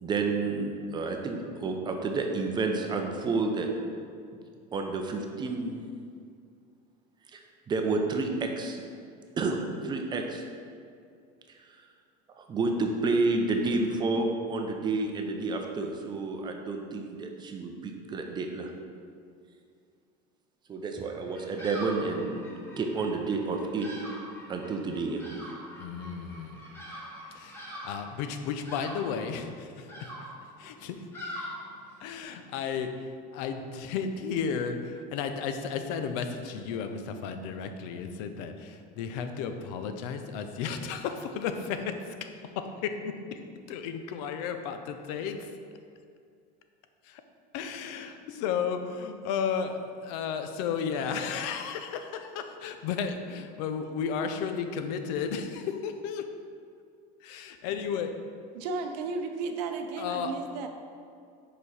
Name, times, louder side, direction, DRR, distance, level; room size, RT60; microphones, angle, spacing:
voice 1, 0.0-3.7 4.7-5.8 7.3-7.4 7.7-8.9 9.4-9.6 9.8-10.4 12.4-18.7 20.7-22.5 22.8-23.9 24.5-25.2, right 3 dB, 20° right, 3 dB, 0.5 m, -30 dB
Bird vocalization bird call bird song, 21.3-32.2, equal, 10° left, 1.4 m, -44 dB
voice 2, 25.8-26.6 27.3-29.9 30.6-31.0 32.0-32.9 33.3-42.0 42.2-42.3 42.5-43.4 43.7-45.4 47.0-47.2 47.5-56.3 57.2-58.1 60.0-60.3, left 6 dB, 70° left, 7 dB, 0.6 m, -33 dB
voice 3, 58.5-60.7, right 4 dB, 85° right, 6 dB, 0.6 m, -34 dB
5.1 x 4.5 x 4.2 m, 2.3 s
supercardioid pair, 140°, 21 cm